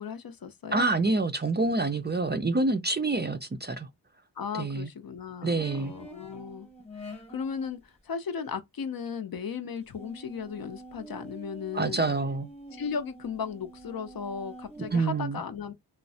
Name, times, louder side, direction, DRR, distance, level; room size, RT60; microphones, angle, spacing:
voice 1, 0.0-0.9 4.4-6.7 7.0-12.1 12.7-15.7, left 6 dB, 55° left, 0.5 m, -36 dB
voice 2, 0.7-3.9 4.5-4.9 5.4-5.9 11.7-12.5 14.9-15.4, right 3 dB, 25° right, 0.4 m, -27 dB
sound 1, 5.6-7.8 9.9-14.9, right 1 dB, 15° left, 0.9 m, -46 dB
3.1 x 2.0 x 2.6 m
wide cardioid pair, 60°, 42 cm